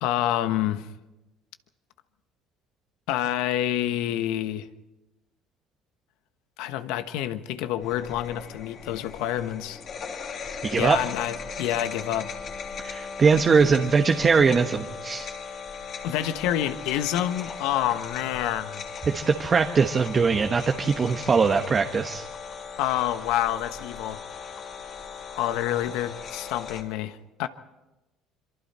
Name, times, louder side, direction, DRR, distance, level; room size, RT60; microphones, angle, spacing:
voice 1, 0.0-0.9 3.1-4.7 6.6-9.8 10.8-12.4 16.0-18.8 22.8-24.2 25.3-27.5, left 12 dB, 75° left, 1.2 m, -28 dB
sound 1, 7.8-26.8, left 5 dB, 50° left, 3.3 m, -38 dB
voice 2, 10.6-11.0 12.8-15.3 19.1-22.2, right 5 dB, 35° right, 1.2 m, -21 dB
26.5 x 23.5 x 4.4 m
supercardioid pair, 90°, 0 cm